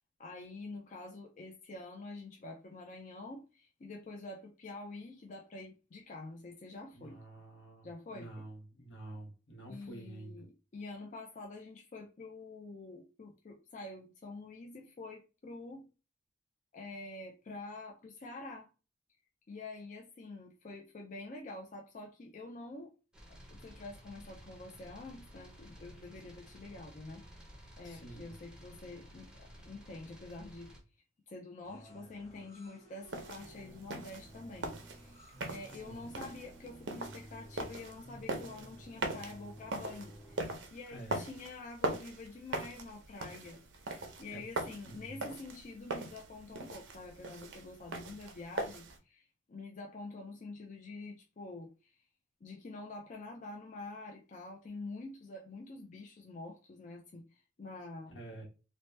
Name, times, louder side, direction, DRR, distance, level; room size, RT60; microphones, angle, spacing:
voice 1, 0.2-7.2 7.8-8.3 9.7-15.9 16.7-18.7 19.5-22.9 23.5-27.2 27.8-30.7 31.3-35.2 35.5-51.9 52.4-58.1, left 2 dB, 40° left, 0.4 m, -47 dB
voice 2, 6.9-10.4 27.8-28.3 35.7-36.1 40.9-41.3 44.3-44.4 44.8-45.3 58.1-58.4, right 2 dB, 80° left, 1.1 m, -49 dB
sound 1, 23.1-30.8, equal, 5° right, 0.6 m, -54 dB
sound 2, 31.6-40.6, right 1 dB, 15° left, 1.2 m, -54 dB
sound 3, 33.0-49.0, right 2 dB, 80° right, 0.6 m, -41 dB
2.7 x 2.1 x 3.2 m
head